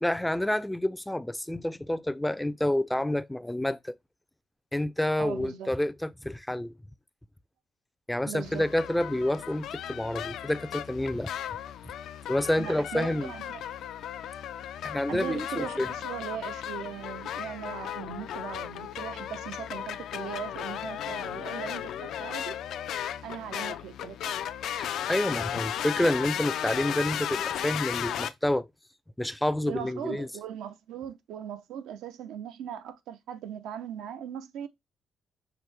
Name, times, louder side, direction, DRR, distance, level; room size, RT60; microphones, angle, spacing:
voice 1, 0.0-4.0 4.7-6.7 8.1-11.3 12.3-13.3 14.8-15.9 24.8-28.7 29.2-30.3, left 1 dB, 5° left, 0.3 m, -28 dB
voice 2, 5.2-5.7 8.2-8.6 12.6-13.6 15.1-22.6 23.2-24.3 29.7-34.7, right 9 dB, 85° right, 0.6 m, -39 dB
sound 1, 8.4-28.3, left 10 dB, 80° left, 0.4 m, -35 dB
5.8 x 2.1 x 3.3 m
cardioid pair, 90°, 0 cm